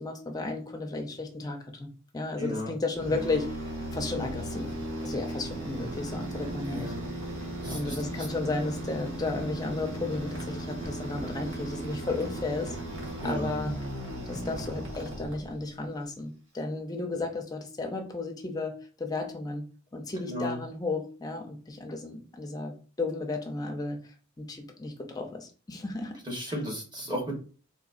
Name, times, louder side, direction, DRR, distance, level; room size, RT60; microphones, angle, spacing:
voice 1, 0.0-1.9 2.1-3.5 3.9-4.7 5.0-6.9 7.7-12.8 13.2-13.8 14.3-24.0 24.4-26.1, left 3 dB, 20° left, 3 dB, 0.5 m, -33 dB
voice 2, 2.4-2.7 6.6-7.0 7.5-8.3 13.2-13.5 20.3-20.6 26.2-27.3, left 1 dB, 20° right, -1 dB, 1.0 m, -34 dB
sound 1, 2.9-15.8, right 1 dB, 65° right, 1.2 m, -36 dB
3.8 x 2.6 x 2.5 m, 0.38 s
head